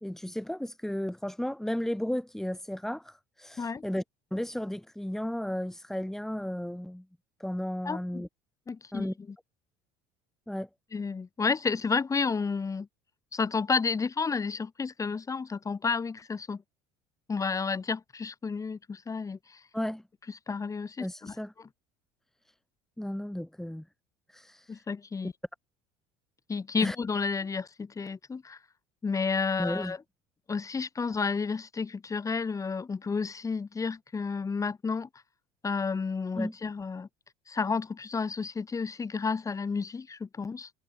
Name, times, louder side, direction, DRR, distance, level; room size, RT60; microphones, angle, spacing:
voice 1, 0.0-4.0 4.3-7.0 7.4-8.3 8.9-9.1 10.5-10.7 19.7-20.0 21.0-21.5 23.0-23.9 24.3-24.8 26.8-27.0 29.6-29.9 36.3-36.5, left 1 dB, 5° left, 3.3 m, -34 dB
voice 2, 7.8-8.2 8.7-9.4 10.9-12.9 13.3-16.6 17.3-19.6 20.5-21.3 24.7-25.3 26.5-28.6 29.0-30.0 30.5-35.1 35.6-37.1 37.5-40.7, left 5 dB, 25° left, 7.9 m, -31 dB
supercardioid pair, 95°, 13 cm